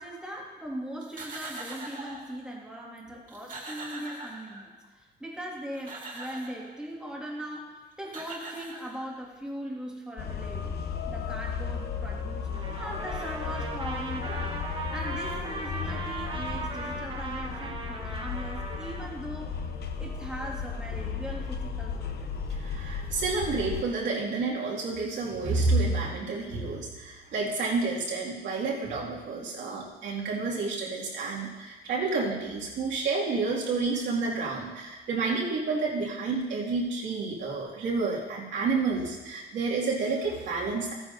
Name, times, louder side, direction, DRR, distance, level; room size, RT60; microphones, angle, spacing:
voice 1, 0.0-10.8 11.1-12.5 12.7-19.7 20.0-22.3, equal, 5° right, -2 dB, 1.9 m, -40 dB
sound 1, 1.0-2.3 3.0-3.1 3.3-4.8 5.5-6.7 7.7-7.8 8.0-9.3, right 2 dB, 45° right, 2.1 m, -42 dB
sound 2, 10.2-23.8, left 6 dB, 60° left, 0.8 m, -35 dB
Trumpet, 12.5-19.0, right 3 dB, 30° right, 1.2 m, -38 dB
voice 2, 14.2-14.6 22.5-40.9, right 3 dB, 80° right, -4 dB, 2.3 m, -30 dB
14.5 x 9.7 x 2.7 m, 1.3 s
cardioid pair, 120°, 19 cm